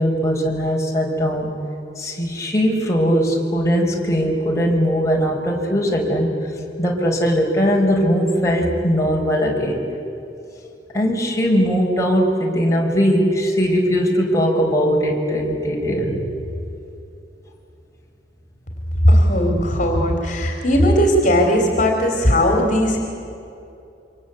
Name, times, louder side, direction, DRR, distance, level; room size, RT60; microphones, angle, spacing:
voice 1, 0.0-1.6 2.0-6.3 6.8-9.8 10.9-16.2, equal, 20° left, -1 dB, 5.2 m, -19 dB
voice 2, 19.0-23.0, equal, 45° left, 3 dB, 3.7 m, -17 dB
28.0 x 25.5 x 8.4 m, 2.6 s
head